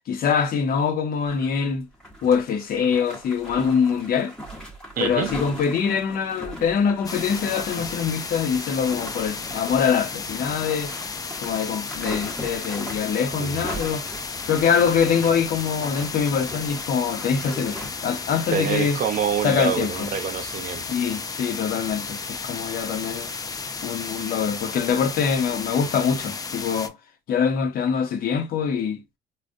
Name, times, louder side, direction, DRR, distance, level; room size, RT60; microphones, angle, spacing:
voice 1, 0.1-1.9 2.2-4.3 5.0-10.9 11.4-14.0 14.5-19.0 19.4-20.1 20.9-23.3 23.8-26.9 27.3-29.0, left 6 dB, 60° left, 0.9 m, -24 dB
sound 1, 1.3-1.6 1.9-17.9, equal, 5° left, 1.1 m, -39 dB
voice 2, 5.0-5.3 13.4-13.8 18.5-20.8, right 8 dB, 55° right, 0.7 m, -26 dB
sound 2, 7.0-26.9, left 4 dB, 20° left, 0.4 m, -33 dB
3.6 x 2.3 x 2.6 m
cardioid pair, 110°, 17 cm